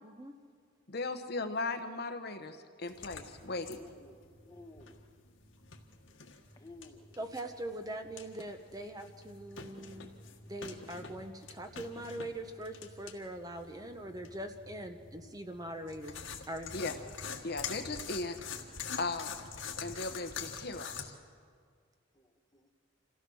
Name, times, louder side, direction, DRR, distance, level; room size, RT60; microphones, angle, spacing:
voice 1, 0.0-0.4 7.2-10.1 10.5-16.2 16.5-17.0, right 1 dB, 20° right, 6 dB, 0.9 m, -42 dB
voice 2, 0.9-3.8 16.7-16.9 17.4-18.4 18.9-19.3 19.8-21.1, left 3 dB, 55° left, 7 dB, 1.1 m, -37 dB
sound 1, 2.9-21.0, left 6 dB, 75° left, 1.6 m, -46 dB
voice 3, 3.8-4.2 4.5-5.0 6.6-7.2 22.1-22.7, left 2 dB, 15° left, 4 dB, 1.2 m, -54 dB
26.5 x 15.5 x 6.4 m, 2.1 s
head